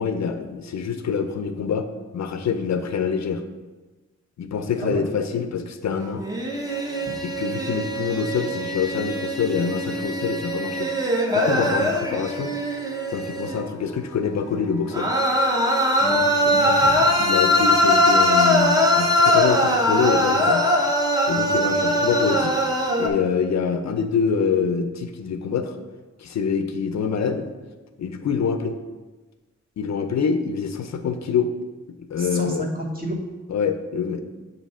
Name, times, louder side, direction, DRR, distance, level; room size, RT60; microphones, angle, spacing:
voice 1, 0.0-1.9 2.1-3.4 4.4-6.2 7.2-10.9 11.3-12.5 13.1-15.1 17.2-20.7 21.3-22.7 23.0-25.8 26.2-27.5 28.0-28.7 29.8-31.5 32.1-32.7 33.5-34.2, left 6 dB, 65° left, 8 dB, 0.5 m, -25 dB
sound 1, 6.2-13.6 14.9-23.1, left 1 dB, 15° right, 0.6 m, -21 dB
voice 2, 16.0-16.9 32.2-33.2, right 1 dB, 30° right, -1 dB, 1.1 m, -30 dB
8.0 x 2.7 x 5.4 m, 1.2 s
wide cardioid pair, 145°, 29 cm